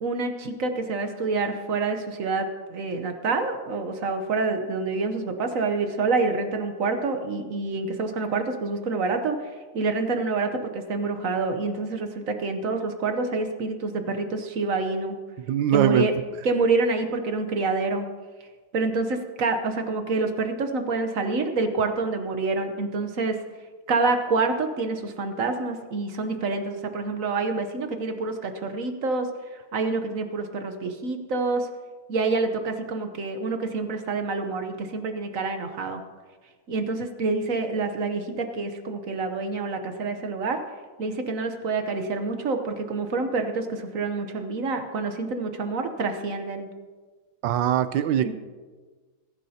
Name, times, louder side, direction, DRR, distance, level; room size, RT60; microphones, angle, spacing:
voice 1, 0.0-9.4 9.7-15.2 15.7-16.1 16.4-18.1 18.7-23.4 23.9-29.3 29.7-31.7 32.1-36.0 36.7-40.6 41.0-46.7 48.2-48.3, right 3 dB, 55° right, 6 dB, 1.0 m, -27 dB
voice 2, 15.5-16.1 47.4-48.3, right 10 dB, 75° right, 12 dB, 1.1 m, -22 dB
21.0 x 11.0 x 2.8 m, 1.4 s
omnidirectional pair, 2.4 m